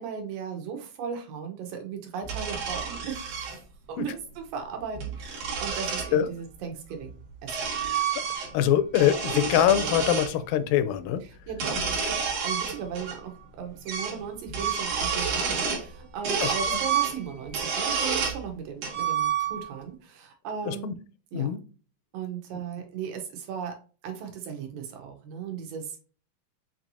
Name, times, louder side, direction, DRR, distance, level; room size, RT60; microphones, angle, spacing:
voice 1, 0.0-3.6 3.9-7.5 11.5-21.0 21.3-21.5 22.1-23.8 24.0-26.0, right 7 dB, 85° right, 3 dB, 2.7 m, -37 dB
sound 1, 2.2-3.6 4.8-6.1 7.0-8.6 8.9-10.3 11.5-13.2 13.4-13.5 13.9-14.2 14.5-15.9 16.2-18.4 18.8-19.8, right 6 dB, 60° right, 1.9 m, -29 dB
voice 2, 8.5-11.2 16.4-16.5 20.7-20.9 21.3-21.6, left 10 dB, 85° left, 11 dB, 2.2 m, -23 dB
6.4 x 3.0 x 2.6 m, 0.37 s
omnidirectional pair, 3.8 m